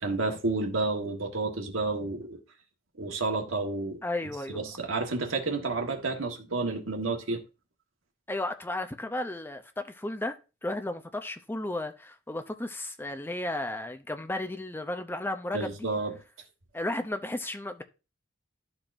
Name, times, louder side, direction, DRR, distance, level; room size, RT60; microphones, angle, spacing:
voice 1, 0.0-2.4 3.0-4.0 4.5-7.4 15.5-16.1, right 3 dB, 80° right, 1.4 m, -30 dB
voice 2, 4.0-4.6 8.3-15.8 16.7-17.8, left 1 dB, 10° left, 0.6 m, -34 dB
12.5 x 4.5 x 2.5 m
head